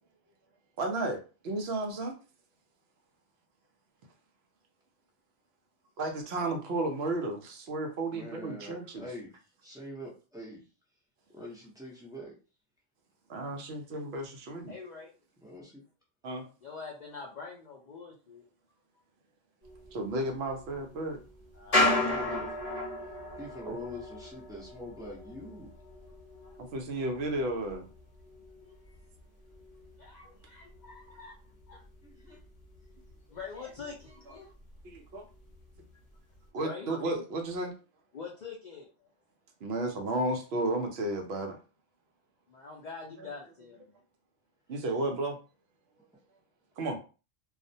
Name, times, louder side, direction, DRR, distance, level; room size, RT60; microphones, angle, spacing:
voice 1, 0.8-1.2 1.4-2.2 6.0-9.1 13.3-14.7 16.2-16.4 19.9-21.2 23.7-23.8 26.6-27.9 34.8-35.2 36.5-37.7 39.6-41.6 43.2-43.3 44.7-45.4 46.8-47.0, right 2 dB, 60° right, 4 dB, 0.7 m, -33 dB
voice 2, 8.1-9.4 9.6-10.6 11.3-12.3 15.4-15.8 21.9-22.6 23.4-25.7 32.0-32.4 46.0-46.2, left 1 dB, 5° right, -3 dB, 0.3 m, -44 dB
voice 3, 14.7-15.1 16.6-18.4 21.6-22.0 26.4-26.6 28.6-28.9 30.0-31.3 31.7-31.8 33.3-34.5 36.6-36.9 38.1-38.9 42.5-43.9, left 5 dB, 85° left, -1 dB, 0.3 m, -44 dB
sound 1, 19.6-31.2 31.5-33.1 33.4-33.5 33.8-34.3 34.7-35.8 36.3-36.4, left 1 dB, 35° left, 0.8 m, -35 dB
2.4 x 2.1 x 2.6 m, 0.34 s
omnidirectional pair, 1.4 m